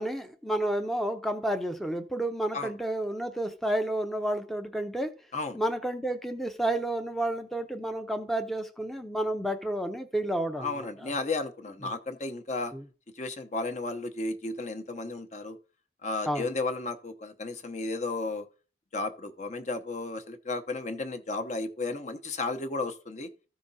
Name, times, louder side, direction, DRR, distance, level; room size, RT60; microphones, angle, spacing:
voice 1, 0.0-5.1 5.5-11.1 12.7-12.8 16.3-16.5, right 1 dB, ahead, 0.6 m, -31 dB
voice 2, 10.6-12.7 13.2-15.6 16.0-18.5 18.9-23.3, left 3 dB, 40° left, 0.8 m, -33 dB
14.0 x 5.0 x 4.1 m
head